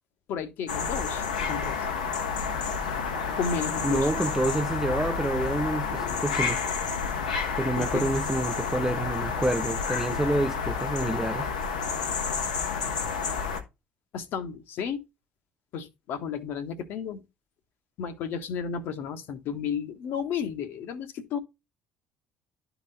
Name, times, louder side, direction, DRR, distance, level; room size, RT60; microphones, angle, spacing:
voice 1, 0.3-1.9 3.3-4.1 7.8-8.1 14.1-15.0 15.7-17.2 18.0-21.4, left 7 dB, 60° left, 1.2 m, -33 dB
sound 1, 0.7-13.6, left 5 dB, 85° left, 1.2 m, -30 dB
voice 2, 3.8-6.6 7.6-11.5, right 1 dB, 10° right, 0.5 m, -28 dB
11.5 x 4.1 x 3.9 m
figure-of-eight pair, 55°, 4 cm